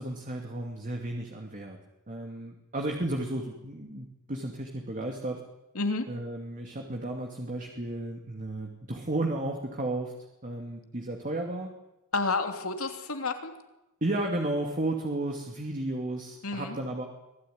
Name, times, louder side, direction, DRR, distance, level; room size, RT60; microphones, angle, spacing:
voice 1, 0.0-1.8 2.1-5.4 6.1-10.1 10.4-11.7 14.0-17.1, right 1 dB, 40° right, 2 dB, 2.6 m, -33 dB
voice 2, 5.7-6.1 12.1-13.5 16.4-16.8, left 3 dB, 75° left, 6 dB, 3.0 m, -30 dB
25.5 x 17.5 x 9.5 m, 0.96 s
head